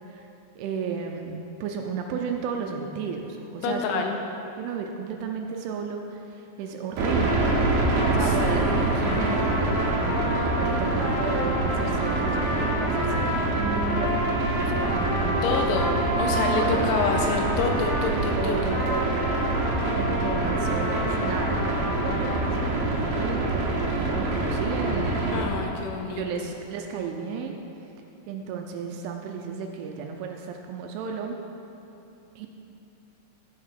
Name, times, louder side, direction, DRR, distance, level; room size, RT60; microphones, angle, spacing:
voice 1, 0.6-4.0 4.6-7.5 8.0-15.6 16.3-16.9 18.3-19.5 20.0-25.7 26.1-27.6 28.3-31.4 32.4-32.5, right 6 dB, 80° right, 3 dB, 2.9 m, -33 dB
voice 2, 3.6-4.1 8.2-9.4 15.4-18.7 25.3-26.5, left 4 dB, 80° left, 2 dB, 3.0 m, -28 dB
sound 1, 7.0-25.4, right 2 dB, 60° right, 2.6 m, -26 dB
Trumpet, 8.0-18.2 18.7-22.5, equal, 60° left, 4.9 m, -31 dB
13.5 x 6.0 x 6.5 m, 2.9 s
omnidirectional pair, 5.9 m